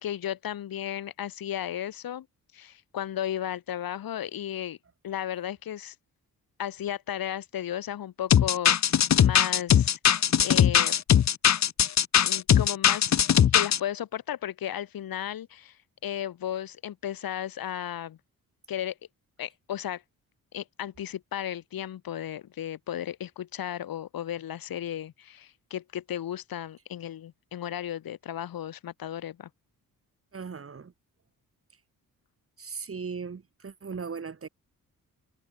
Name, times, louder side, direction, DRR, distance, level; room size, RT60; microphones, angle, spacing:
voice 1, 0.0-2.3 2.5-4.8 5.0-5.9 6.6-10.9 12.2-13.2 13.5-15.8 16.0-18.2 18.7-19.0 19.4-20.0 20.5-29.5, left 11 dB, 90° left, 7.7 m, -34 dB
sound 1, 8.3-13.8, left 9 dB, 55° left, 1.1 m, -20 dB
voice 2, 30.3-30.9 32.6-34.5, right 5 dB, 40° right, 6.4 m, -38 dB
cardioid pair, 105°, 34 cm